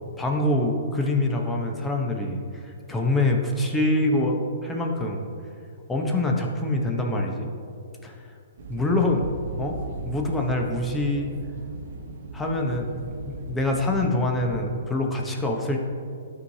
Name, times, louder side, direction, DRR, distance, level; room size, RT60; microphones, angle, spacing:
voice 1, 0.2-5.2 5.9-7.5 8.0-8.2 8.7-9.3 9.6-9.8 10.0-11.3 12.3-15.8, left 2 dB, 10° left, 1 dB, 1.0 m, -25 dB
sound 1, 8.6-14.6, right 2 dB, 60° right, 1.0 m, -38 dB
12.5 x 4.8 x 2.8 m, 2.4 s
hypercardioid pair, 130°, 0 cm